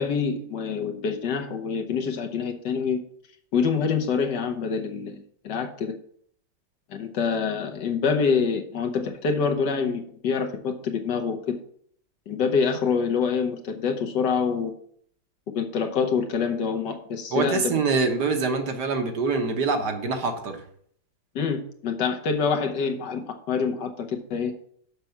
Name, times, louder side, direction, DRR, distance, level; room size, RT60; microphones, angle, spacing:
voice 1, 0.0-3.0 3.5-5.9 6.9-11.5 12.3-14.7 15.5-17.7 21.3-24.5, left 5 dB, 70° left, 4 dB, 1.5 m, -26 dB
voice 2, 17.3-20.6, right 4 dB, 65° right, 4 dB, 1.6 m, -25 dB
6.7 x 6.1 x 5.7 m, 0.62 s
omnidirectional pair, 2.0 m